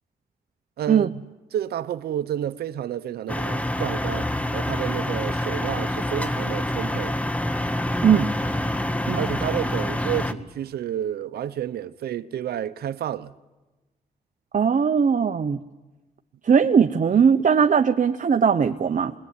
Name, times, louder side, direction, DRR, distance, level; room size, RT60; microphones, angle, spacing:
voice 1, 0.8-7.2 9.1-13.3, right 10 dB, 85° right, 0.9 m, -30 dB
sound 1, 3.3-10.3, left 1 dB, 10° left, 1.8 m, -26 dB
voice 2, 14.5-15.6 16.4-19.1, right 6 dB, 55° right, 1.1 m, -19 dB
25.5 x 21.5 x 9.7 m
cardioid pair, 60°, 16 cm